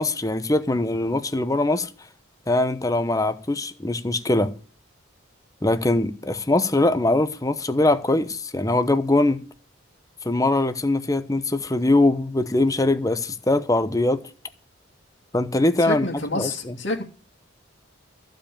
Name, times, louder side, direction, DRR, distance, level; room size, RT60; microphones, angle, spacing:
voice 1, 0.0-1.9 2.5-4.5 5.6-9.4 10.2-14.2 15.3-16.1 16.4-16.7, left 2 dB, 15° left, 0.9 m, -22 dB
voice 2, 15.8-17.0, left 2 dB, 60° left, 2.8 m, -28 dB
14.5 x 5.2 x 8.7 m
head